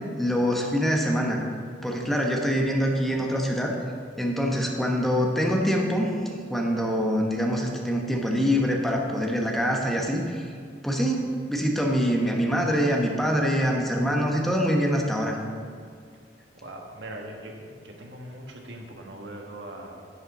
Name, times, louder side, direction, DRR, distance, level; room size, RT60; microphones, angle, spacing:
voice 1, 0.2-1.4 1.8-3.8 4.2-6.1 6.5-10.5 10.8-15.4, equal, ahead, 0 dB, 1.0 m, -24 dB
voice 2, 16.5-20.1, right 1 dB, 90° right, 1 dB, 1.4 m, -41 dB
10.5 x 8.6 x 4.1 m, 2.2 s
head